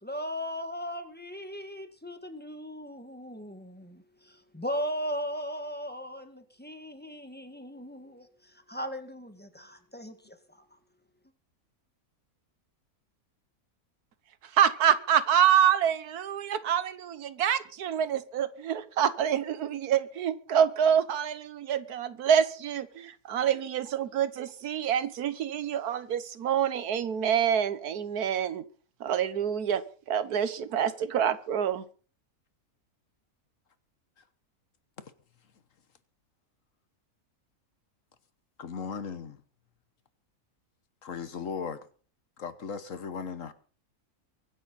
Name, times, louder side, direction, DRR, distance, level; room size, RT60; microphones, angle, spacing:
voice 1, 0.0-10.8, equal, 5° left, 1.6 m, -38 dB
voice 2, 14.5-28.6 29.0-31.8, right 9 dB, 90° right, 1.5 m, -26 dB
voice 3, 38.6-39.4 41.0-41.9 42.4-43.5, left 6 dB, 60° left, 1.4 m, -37 dB
23.5 x 10.5 x 4.1 m
omnidirectional pair, 1.6 m